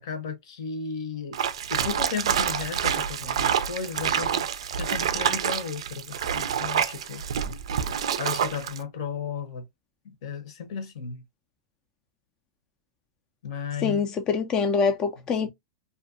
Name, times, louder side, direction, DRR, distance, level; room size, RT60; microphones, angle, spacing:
voice 1, 0.0-1.4 1.7-4.5 4.8-7.2 8.2-9.7 10.0-11.2 13.4-14.0, left 6 dB, 70° left, 0.8 m, -34 dB
sound 1, 1.3-8.8, right 8 dB, 85° right, 0.3 m, -27 dB
voice 2, 13.8-15.5, left 5 dB, 25° left, 0.3 m, -24 dB
2.5 x 2.2 x 2.5 m
supercardioid pair, 135°, 3 cm